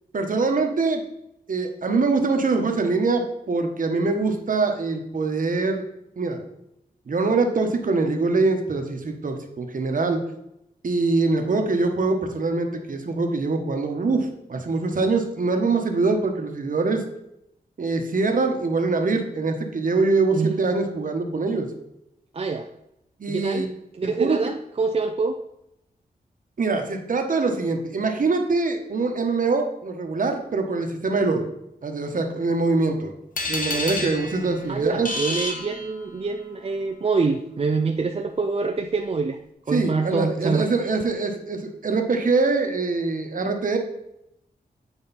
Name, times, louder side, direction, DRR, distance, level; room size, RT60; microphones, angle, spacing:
voice 1, 0.1-1.0 1.5-5.8 6.2-6.4 7.1-10.2 10.8-17.0 17.8-21.7 23.2-23.7 24.0-24.4 26.6-31.4 31.8-33.1 33.5-35.1 39.7-43.8, right 3 dB, 55° right, 4 dB, 1.2 m, -23 dB
voice 2, 22.3-22.7 23.3-23.7 23.9-25.4 34.7-39.4 39.7-40.7, right 4 dB, 40° right, 4 dB, 0.5 m, -25 dB
sound 1, 33.4-36.4, left 2 dB, 60° left, 1.3 m, -30 dB
9.0 x 4.9 x 4.2 m, 0.82 s
wide cardioid pair, 95°, 16 cm